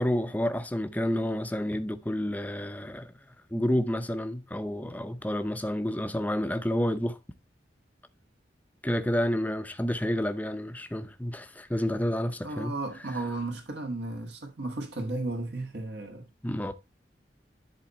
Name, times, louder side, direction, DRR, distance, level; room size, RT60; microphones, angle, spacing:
voice 1, 0.0-3.1 3.5-7.2 8.8-12.7 16.4-16.7, equal, 10° left, 0.6 m, -29 dB
voice 2, 12.4-16.2, right 2 dB, 70° right, 1.6 m, -34 dB
10.5 x 4.2 x 4.1 m
head